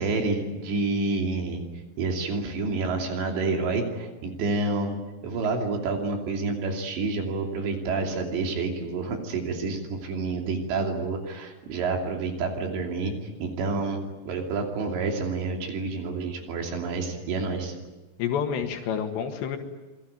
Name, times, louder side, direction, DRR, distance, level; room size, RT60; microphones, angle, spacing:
voice 1, 0.0-1.6 2.0-5.0 5.2-13.1 13.4-14.0 14.3-17.7, right 3 dB, 80° right, 2 dB, 5.1 m, -28 dB
voice 2, 18.2-19.6, left 8 dB, 80° left, 4 dB, 4.0 m, -28 dB
27.5 x 21.5 x 9.3 m, 1.2 s
omnidirectional pair, 5.0 m